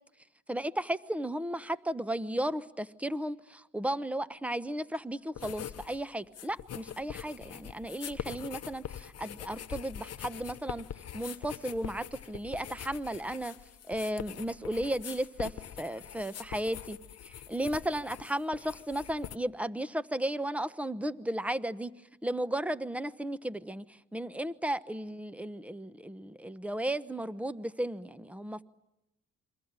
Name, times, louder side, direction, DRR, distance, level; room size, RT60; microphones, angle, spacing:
voice 1, 0.5-10.8 11.1-13.5 13.9-17.0 17.2-18.6 18.9-21.9 22.2-23.8 24.1-28.6, right 1 dB, 5° right, 1.0 m, -34 dB
sound 1, 5.3-6.0 6.2-19.4, left 10 dB, 55° left, 1.0 m, -43 dB
28.0 x 23.5 x 9.0 m
cardioid pair, 90°, 30 cm